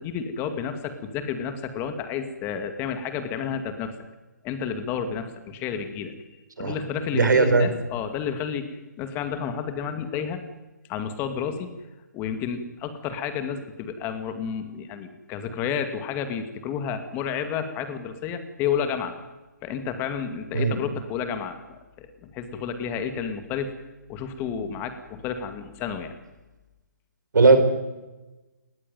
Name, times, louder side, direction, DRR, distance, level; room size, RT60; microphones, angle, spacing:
voice 1, 0.0-3.9 4.4-6.1 6.6-10.4 10.9-11.7 12.1-19.1 19.6-21.6 22.0-23.7 24.1-26.1, left 7 dB, 20° left, 8 dB, 2.3 m, -31 dB
voice 2, 7.1-7.7 20.5-20.8 27.3-27.6, right 4 dB, 75° right, 9 dB, 4.7 m, -17 dB
20.0 x 18.0 x 9.4 m, 1.1 s
figure-of-eight pair, 145°, 10 cm